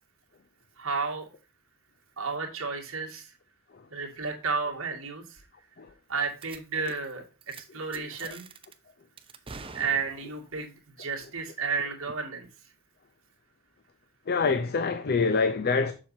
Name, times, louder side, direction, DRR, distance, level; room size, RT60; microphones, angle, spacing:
voice 1, 0.8-1.3 2.2-3.3 3.9-5.4 6.1-8.4 9.7-12.5, right 4 dB, 65° right, 2.2 m, -32 dB
sound 1, 6.4-6.6 6.9-7.1 7.4-7.6 7.9-8.7 9.2-10.5, right 4 dB, 25° right, 0.7 m, -45 dB
voice 2, 14.3-15.9, left 4 dB, 45° left, 0.6 m, -25 dB
7.3 x 6.2 x 2.7 m
head